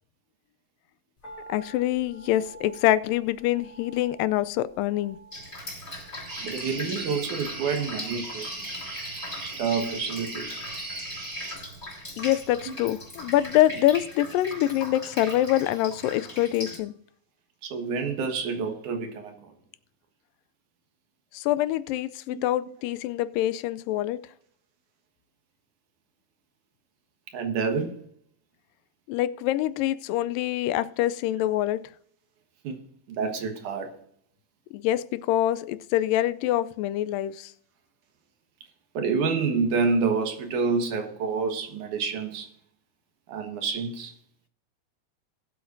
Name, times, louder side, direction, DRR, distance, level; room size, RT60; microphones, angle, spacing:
sound 1, 1.2-13.5 13.8-13.9, right 3 dB, 40° left, 3.7 m, -52 dB
voice 1, 1.5-5.2 12.2-16.9 21.3-24.2 29.1-31.8 34.7-37.5, left 14 dB, 90° left, 2.3 m, -25 dB
Drip, 5.3-16.8, left 1 dB, 20° left, 4.6 m, -40 dB
sound 2, 6.3-11.6, right 2 dB, 20° right, 2.6 m, -37 dB
voice 2, 6.4-9.0 9.4-10.6 12.6-12.7 17.6-19.5 22.3-22.4 27.3-28.0 32.6-32.8 33.1-34.0 38.9-42.5 43.3-44.1, right 5 dB, 70° right, 2.7 m, -28 dB
20.0 x 8.0 x 2.6 m
omnidirectional pair, 3.9 m